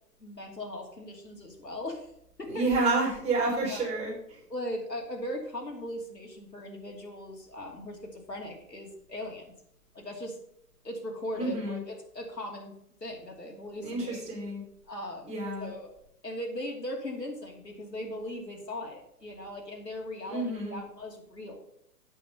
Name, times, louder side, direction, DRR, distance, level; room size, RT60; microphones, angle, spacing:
voice 1, 0.2-2.1 2.4-2.6 3.5-3.9 4.5-9.5 9.9-10.4 10.8-12.8 13.0-14.2 14.9-15.3 15.6-15.9 16.2-21.6, left 1 dB, 90° left, 1 dB, 2.8 m, -39 dB
voice 2, 2.5-4.4 11.3-11.8 13.8-14.6 15.3-15.7 20.3-20.8, right 3 dB, 15° right, -4 dB, 3.9 m, -29 dB
8.3 x 6.8 x 5.5 m, 0.72 s
figure-of-eight pair, 130°, 48 cm